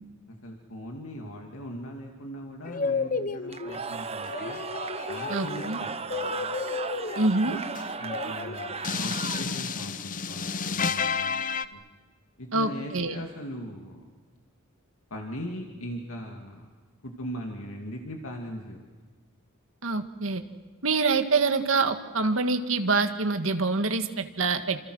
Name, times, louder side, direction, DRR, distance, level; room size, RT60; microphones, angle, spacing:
voice 1, 0.3-4.6 5.1-6.5 7.4-7.6 8.0-11.4 11.7-11.8 12.4-14.0 15.1-16.7 17.0-18.8, equal, 70° left, 2 dB, 2.5 m, -40 dB
sound 1, 2.6-3.8 4.3-11.7, left 5 dB, 40° left, 0.8 m, -31 dB
Cheering / Crowd, 3.5-9.8, right 4 dB, 30° right, 1.1 m, -36 dB
voice 2, 5.3-5.8 7.2-7.6 12.5-13.2 19.8-20.4 20.8-24.9, right 3 dB, 65° right, 7 dB, 1.9 m, -26 dB
28.5 x 27.5 x 6.4 m, 1.4 s
head